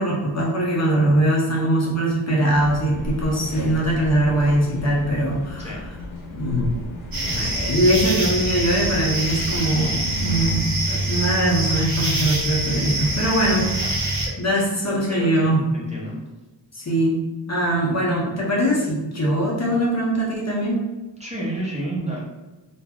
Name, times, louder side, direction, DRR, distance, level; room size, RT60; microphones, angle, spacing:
voice 1, 0.0-5.8 6.3-6.7 7.3-13.6 14.4-15.6 16.7-17.2 17.5-20.8, right 1 dB, 35° left, -4 dB, 0.5 m, -21 dB
sound 1, 2.5-10.6, left 1 dB, 90° left, 0.7 m, -34 dB
sound 2, 7.1-14.3, right 1 dB, 50° right, 0.7 m, -25 dB
voice 2, 14.2-16.2 21.2-22.2, right 1 dB, 15° right, -6 dB, 0.5 m, -32 dB
2.2 x 2.0 x 3.4 m, 1.1 s
wide cardioid pair, 155°, 46 cm